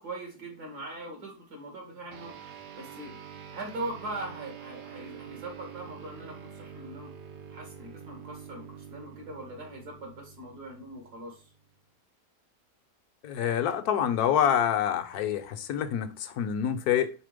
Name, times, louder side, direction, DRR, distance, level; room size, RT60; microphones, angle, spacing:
voice 1, 0.0-2.3 2.8-3.1 3.5-7.1 7.5-11.5, right 2 dB, 80° right, 2.8 m, -41 dB
sound 1, 2.1-11.9, right 7 dB, 60° right, 1.1 m, -46 dB
voice 2, 13.2-17.1, left 9 dB, 75° left, 1.3 m, -27 dB
5.1 x 4.1 x 5.0 m
omnidirectional pair, 1.7 m